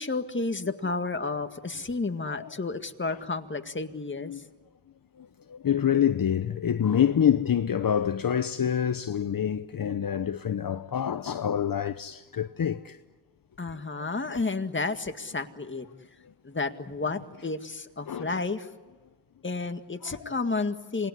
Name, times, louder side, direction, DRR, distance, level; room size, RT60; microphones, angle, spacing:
voice 1, 0.0-4.4 13.6-15.9 16.4-18.7 19.4-21.1, left 3 dB, 30° left, 2.0 m, -31 dB
voice 2, 5.2-13.0 18.1-18.4 20.0-20.3, left 9 dB, 55° left, 0.9 m, -27 dB
27.5 x 20.0 x 9.9 m
wide cardioid pair, 85°, 41 cm